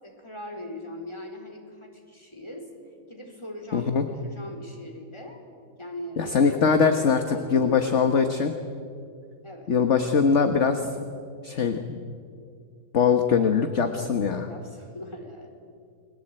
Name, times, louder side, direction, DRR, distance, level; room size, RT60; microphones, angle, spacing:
voice 1, 0.0-2.7 3.1-4.0 4.2-5.4 5.8-6.3 7.3-8.0 9.4-9.7 14.5-15.6, left 1 dB, 15° left, 2 dB, 4.3 m, -40 dB
voice 2, 3.7-4.0 6.2-8.5 9.7-10.9 11.4-12.0 12.9-14.5, left 6 dB, 45° left, 6 dB, 1.6 m, -22 dB
29.5 x 22.0 x 9.0 m, 2.3 s
omnidirectional pair, 1.8 m